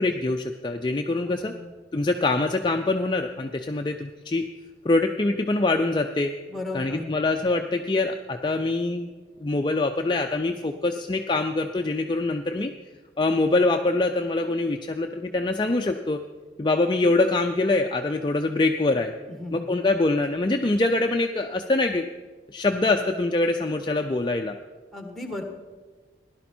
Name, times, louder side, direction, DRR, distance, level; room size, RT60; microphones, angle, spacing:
voice 1, 0.0-1.5 1.9-4.4 4.8-6.4 6.7-9.1 9.4-12.7 13.2-16.2 16.6-19.1 19.5-22.0 22.5-24.6, left 2 dB, 25° left, 4 dB, 0.4 m, -24 dB
voice 2, 1.3-1.7 6.5-7.1 19.3-19.8 24.9-25.4, left 2 dB, ahead, 4 dB, 1.4 m, -36 dB
16.5 x 11.5 x 4.4 m, 1.4 s
head